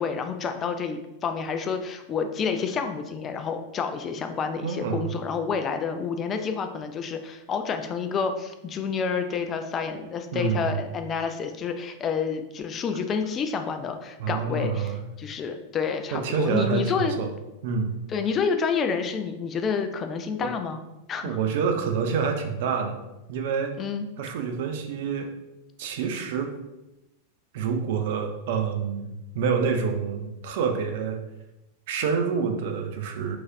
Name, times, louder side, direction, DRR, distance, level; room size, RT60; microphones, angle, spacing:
voice 1, 0.0-17.1 18.1-20.8 21.1-21.4 23.8-24.1, left 5 dB, 25° left, 7 dB, 0.3 m, -29 dB
voice 2, 4.6-5.1 10.3-10.8 14.2-15.0 16.1-17.3 17.6-18.0 20.4-20.5 21.2-23.0 23.3-23.7 24.2-25.3 25.8-26.5 27.5-31.2 31.9-33.4, right 6 dB, 50° right, 5 dB, 0.5 m, -27 dB
3.9 x 3.1 x 2.5 m, 0.96 s
figure-of-eight pair, 90°, 0 cm